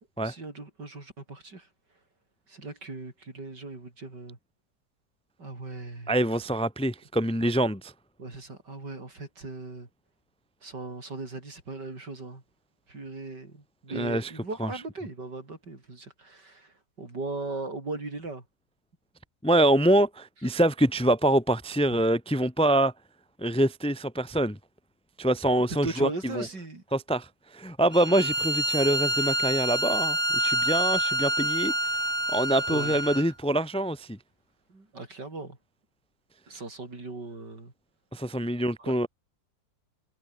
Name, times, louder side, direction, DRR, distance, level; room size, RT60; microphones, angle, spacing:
voice 1, 0.2-1.7 2.5-4.4 5.4-6.1 8.2-9.9 10.6-12.4 12.9-18.4 21.9-22.0 25.8-26.8 32.7-33.3 34.7-35.6 36.5-37.7 38.8-38.9, right 3 dB, 65° right, 6.0 m, -38 dB
voice 2, 6.1-7.9 13.9-14.3 14.6-14.7 19.4-22.9 23.4-24.6 25.2-26.1 26.3-26.4 26.9-27.3 27.5-31.7 32.3-34.2 38.1-39.1, right 1 dB, 5° left, 1.3 m, -25 dB
Bowed string instrument, 27.9-33.3, right 1 dB, 15° right, 3.5 m, -27 dB
omnidirectional pair, 2.0 m